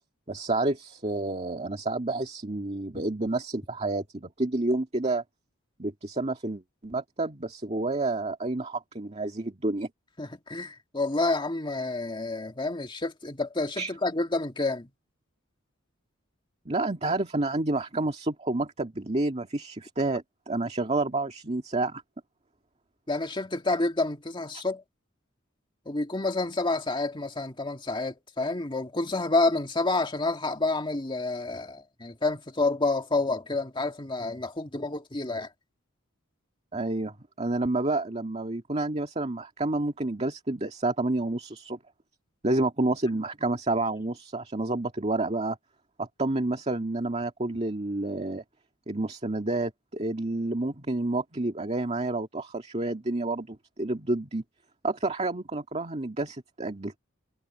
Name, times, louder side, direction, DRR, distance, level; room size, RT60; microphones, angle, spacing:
voice 1, 0.3-5.2 5.8-9.9 13.8-13.9 16.7-22.0 36.7-41.8 42.4-45.6 46.0-48.4 48.9-54.4 54.8-57.0, right 2 dB, 30° right, 2.0 m, -29 dB
voice 2, 10.2-14.9 23.1-24.8 25.9-35.5, left 2 dB, 25° left, 2.0 m, -29 dB
head